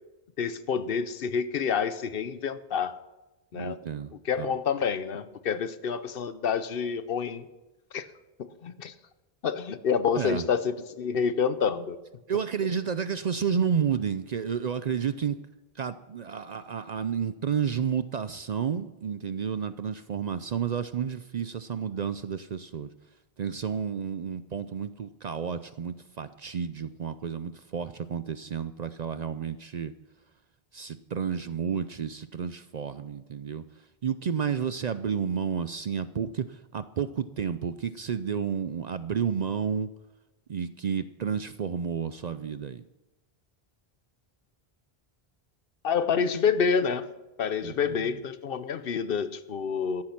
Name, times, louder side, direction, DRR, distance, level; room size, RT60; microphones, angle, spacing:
voice 1, 0.4-3.0 3.5-3.8 4.2-7.5 7.9-8.1 8.4-8.9 9.4-12.0 45.8-47.1 47.4-50.0, left 6 dB, 65° left, 13 dB, 0.9 m, -28 dB
voice 2, 3.5-4.5 10.2-10.4 12.3-15.4 15.8-22.9 23.4-29.9 30.7-33.6 34.0-39.9 40.5-42.8 47.6-48.1, right 7 dB, 50° right, 13 dB, 0.5 m, -31 dB
13.5 x 10.5 x 5.9 m, 1.0 s
omnidirectional pair, 1.0 m